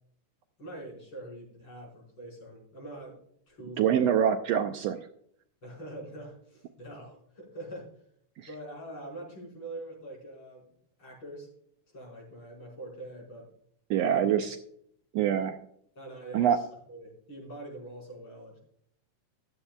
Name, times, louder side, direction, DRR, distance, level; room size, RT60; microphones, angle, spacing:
voice 1, 0.6-3.2 3.5-4.2 5.6-7.9 8.5-10.6 11.0-11.5 11.9-13.5 14.0-14.4 16.0-18.6, right 1 dB, 40° left, -2 dB, 5.7 m, -43 dB
voice 2, 3.8-5.0 8.4-8.5 13.9-14.6 15.1-15.6 16.3-16.6, right 9 dB, 75° right, 7 dB, 1.6 m, -25 dB
15.0 x 11.5 x 2.3 m, 0.68 s
omnidirectional pair, 3.3 m